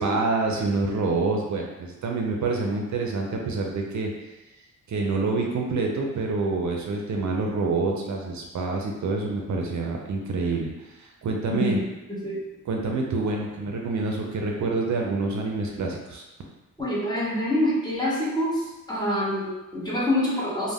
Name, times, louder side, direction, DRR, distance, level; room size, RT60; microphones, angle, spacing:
voice 1, 0.0-4.1 4.9-10.7 11.0-11.8 12.7-16.2, right 3 dB, 65° right, 0 dB, 0.4 m, -27 dB
voice 2, 11.4-12.4 16.8-20.7, left 1 dB, 15° left, -7 dB, 0.6 m, -26 dB
2.1 x 2.1 x 3.4 m, 1.0 s
wide cardioid pair, 135°, 31 cm